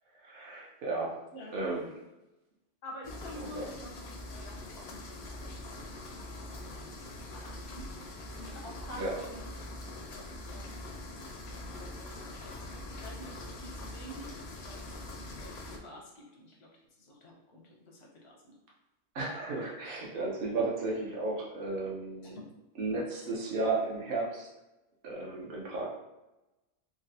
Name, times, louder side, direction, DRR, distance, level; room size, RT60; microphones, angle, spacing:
voice 1, 0.2-1.1 1.5-1.8 3.4-3.7 9.0-9.1 19.1-22.3 22.8-24.5 25.0-25.9, right 3 dB, 55° right, -3 dB, 0.8 m, -34 dB
voice 2, 2.8-6.4 6.6-7.0 7.3-9.5 9.9-16.7 17.0-18.5 22.2-22.4, left 1 dB, 85° left, -1 dB, 1.2 m, -49 dB
sound 1, 3.0-15.8, left 1 dB, 65° left, 0.7 m, -43 dB
3.9 x 2.1 x 2.7 m, 0.99 s
omnidirectional pair, 1.2 m